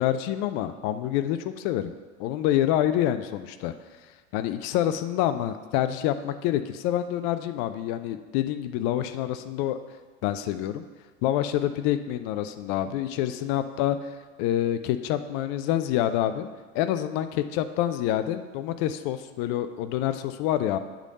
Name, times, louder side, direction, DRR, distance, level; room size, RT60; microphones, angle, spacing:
voice 1, 0.0-1.9 2.2-3.7 4.3-9.8 10.2-10.8 11.2-14.0 14.4-16.5 16.7-20.8, left 12 dB, 35° left, 11 dB, 0.4 m, -27 dB
8.0 x 3.8 x 6.7 m, 1.4 s
figure-of-eight pair, 80°, 40 cm